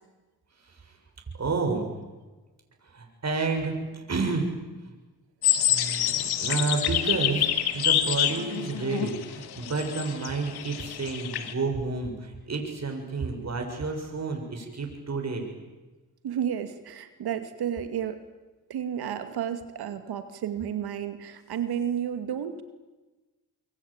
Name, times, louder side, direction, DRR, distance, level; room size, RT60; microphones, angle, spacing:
voice 1, 1.4-1.9 2.9-4.5 5.7-6.1 6.4-15.5, right 4 dB, 45° right, 3 dB, 7.1 m, -30 dB
sound 1, 5.4-11.5, left 10 dB, 85° left, 2.1 m, -27 dB
voice 2, 16.2-18.2 18.7-22.6, right 9 dB, 80° right, 9 dB, 2.4 m, -32 dB
25.5 x 23.5 x 8.9 m, 1.2 s
supercardioid pair, 60°, 38 cm